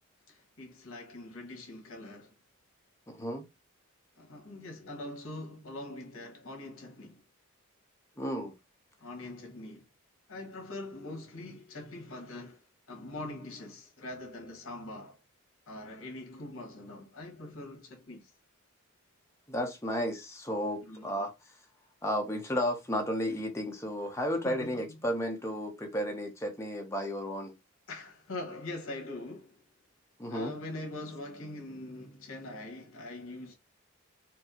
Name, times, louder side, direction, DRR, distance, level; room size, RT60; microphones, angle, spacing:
voice 1, 0.3-2.3 4.2-7.2 9.0-9.8 10.3-15.2 15.7-18.3 20.8-21.1 24.4-25.0 27.9-29.6 30.3-33.5, left 2 dB, 65° left, 1.4 m, -43 dB
voice 2, 3.1-3.4 8.2-8.5 19.5-21.3 22.0-27.5 30.2-30.5, equal, 10° left, 0.6 m, -33 dB
4.4 x 2.0 x 2.7 m
head